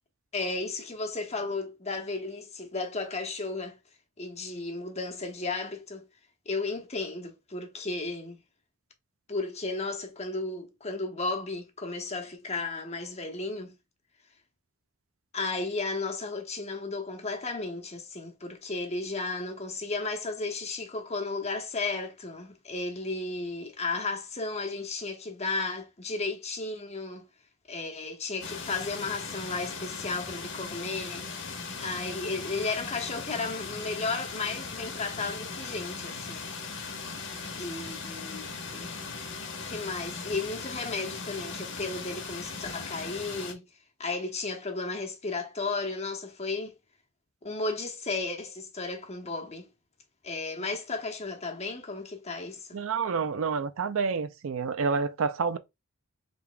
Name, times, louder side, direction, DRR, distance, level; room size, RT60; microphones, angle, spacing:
voice 1, 0.3-3.8 4.2-6.0 6.5-8.4 9.3-13.8 15.3-27.3 27.7-31.3 31.7-36.5 37.6-38.5 38.7-38.9 39.7-43.6 44.0-46.7 47.4-49.7 50.2-52.8, left 3 dB, 30° left, 0.9 m, -34 dB
sound 1, 28.4-43.5, left 4 dB, 60° left, 1.1 m, -38 dB
voice 2, 52.7-55.6, right 5 dB, 70° right, 0.5 m, -28 dB
5.1 x 3.4 x 2.2 m
head